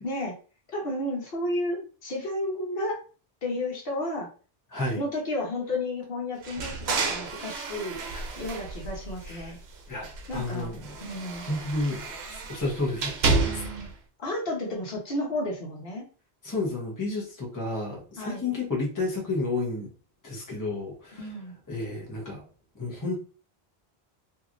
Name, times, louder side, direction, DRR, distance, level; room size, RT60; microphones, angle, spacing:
voice 1, 0.0-0.3 0.7-3.0 3.4-4.3 4.9-8.0 8.4-9.6 10.3-10.7 11.0-11.5 13.4-13.9 14.2-16.0 18.2-18.5 21.2-21.6, left 1 dB, 65° left, -1 dB, 1.1 m, -32 dB
voice 2, 4.7-5.0 8.1-8.4 9.3-9.5 9.9-11.0 11.4-12.0 12.3-13.7 16.4-19.9 20.2-21.3 21.7-22.5 22.7-23.2, left 2 dB, 20° left, -2 dB, 0.9 m, -31 dB
sound 1, 6.4-9.6 10.0-13.9, right 3 dB, 80° right, 0.9 m, -31 dB
3.0 x 2.8 x 2.5 m, 0.37 s
omnidirectional pair, 1.0 m